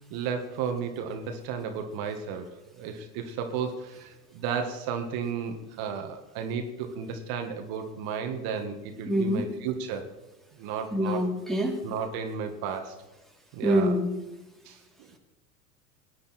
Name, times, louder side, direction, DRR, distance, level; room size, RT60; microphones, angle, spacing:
voice 1, 0.1-2.5 2.7-10.0 10.6-11.2 11.8-12.9 13.5-14.0 14.7-14.8, right 6 dB, 55° right, 5 dB, 1.8 m, -33 dB
voice 2, 9.1-9.4 10.9-11.8 13.6-14.1, equal, ahead, -1 dB, 2.8 m, -25 dB
18.0 x 10.0 x 4.3 m, 1.1 s
hypercardioid pair, 95°, 45 cm